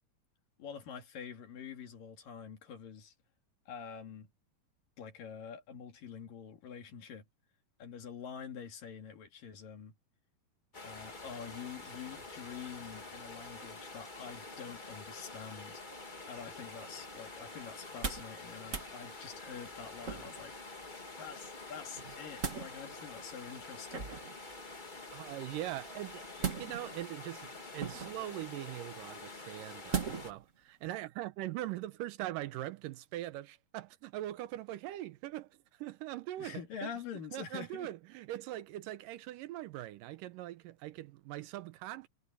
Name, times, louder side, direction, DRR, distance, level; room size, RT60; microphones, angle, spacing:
voice 1, 0.6-3.1 3.7-4.3 5.0-7.2 7.8-9.9 10.8-15.8 16.3-20.5 21.2-24.1 36.4-37.9, left 7 dB, 75° left, 4.1 m, -46 dB
sound 1, 10.7-30.3, left 3 dB, 20° left, 1.2 m, -47 dB
sound 2, 17.8-18.4 18.6-18.9 20.0-20.5 22.0-22.7 23.9-24.4 26.4-27.0 27.8-28.3 29.9-30.4 30.8-30.9, right 6 dB, 35° right, 1.3 m, -37 dB
voice 2, 25.1-36.6 37.3-42.1, right 15 dB, 80° right, 2.3 m, -42 dB
omnidirectional pair, 3.9 m